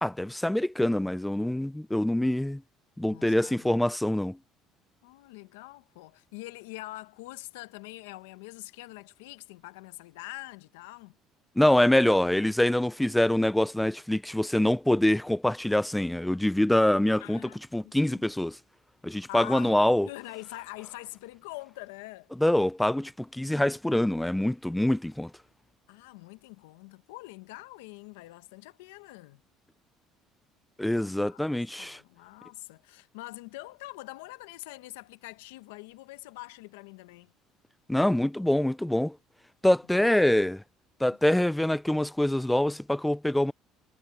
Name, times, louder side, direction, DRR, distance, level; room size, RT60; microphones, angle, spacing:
voice 1, 0.0-2.6 3.0-4.4 11.6-18.6 19.0-20.1 22.4-25.3 30.8-32.0 37.9-39.1 39.6-40.6 41.0-43.5, left 1 dB, 5° left, 0.6 m, -25 dB
voice 2, 3.1-3.8 5.0-11.2 17.2-17.6 17.8-18.2 19.3-22.3 25.9-29.4 30.9-31.4 31.8-37.3 39.9-40.1, left 20 dB, 90° left, 1.1 m, -44 dB
supercardioid pair, 80°, 0 cm